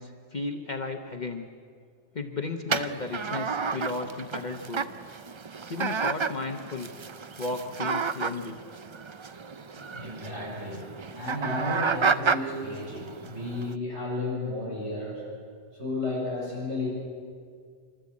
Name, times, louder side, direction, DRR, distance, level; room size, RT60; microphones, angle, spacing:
voice 1, 0.0-1.5 2.1-4.9 5.7-6.9 7.4-8.6, left 3 dB, 40° left, 4 dB, 1.0 m, -34 dB
sound 1, 2.7-13.7, right 5 dB, 40° right, 0.4 m, -31 dB
voice 2, 9.6-10.8 11.1-15.2 15.7-16.9, left 2 dB, 75° right, -4 dB, 6.3 m, -33 dB
26.5 x 13.0 x 8.5 m, 2.1 s
omnidirectional pair, 1.2 m